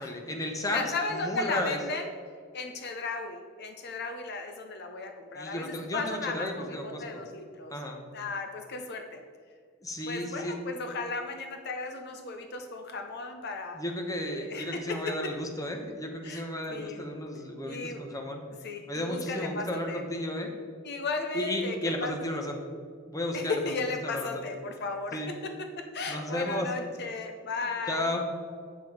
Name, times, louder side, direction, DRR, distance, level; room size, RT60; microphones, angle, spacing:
voice 1, 0.0-1.8 5.3-7.2 7.7-8.0 9.8-10.5 13.7-18.4 18.9-20.5 21.3-22.6 23.1-23.7 24.0-24.4 25.1-25.3 26.1-26.7 27.9-28.3, left 1 dB, 15° left, 3 dB, 1.0 m, -33 dB
voice 2, 0.7-2.1 2.5-7.7 8.1-9.2 10.1-13.8 14.2-15.0 16.2-16.4 16.7-17.0 17.7-18.0 18.6-20.0 20.8-22.6 23.3-25.2 25.9-28.1, left 3 dB, 55° left, 5 dB, 0.7 m, -35 dB
8.2 x 6.7 x 4.8 m, 2.1 s
head